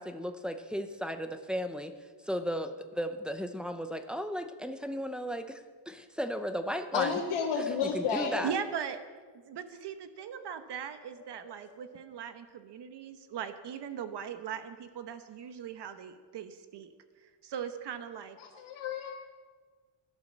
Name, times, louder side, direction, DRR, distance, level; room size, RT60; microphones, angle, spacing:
voice 1, 0.0-1.9 2.2-7.2 7.7-8.5, equal, ahead, 6 dB, 0.6 m, -35 dB
voice 2, 6.9-8.5 11.3-11.4 11.7-11.9 18.4-19.1, left 6 dB, 75° left, -2 dB, 2.1 m, -32 dB
voice 3, 8.4-9.0 9.5-16.9 17.2-18.4, right 8 dB, 55° right, 9 dB, 1.2 m, -39 dB
16.0 x 12.0 x 7.3 m, 1.5 s
cardioid pair, 180°, 49 cm